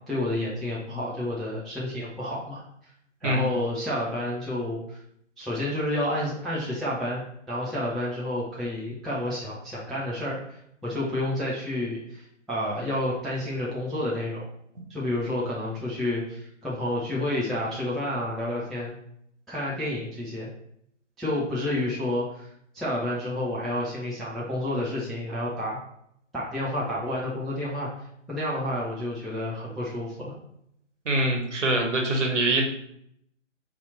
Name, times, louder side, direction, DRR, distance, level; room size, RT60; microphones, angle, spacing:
voice 1, 0.0-2.6 3.2-5.0 5.4-14.4 14.9-19.0 19.5-20.5 21.2-22.5 22.7-25.8 26.3-27.9 28.3-30.4, left 1 dB, ahead, -7 dB, 0.3 m, -30 dB
voice 2, 31.0-32.6, right 1 dB, 70° right, 1 dB, 1.2 m, -24 dB
4.1 x 2.8 x 3.9 m, 0.73 s
figure-of-eight pair, 155°, 38 cm